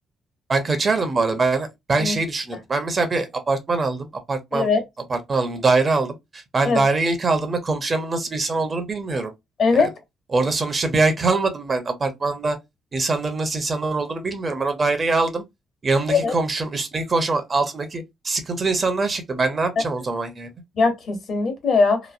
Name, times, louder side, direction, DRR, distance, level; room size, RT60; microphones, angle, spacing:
voice 1, 0.5-4.7 5.1-9.3 9.7-9.9 10.3-12.6 12.9-15.4 15.8-20.5, right 3 dB, 35° right, 0.8 m, -23 dB
voice 2, 4.5-4.8 6.6-6.8 9.6-9.9 16.1-16.3 20.7-22.0, left 4 dB, 55° left, 1.1 m, -20 dB
3.0 x 2.0 x 2.5 m
cardioid pair, 90°, 0 cm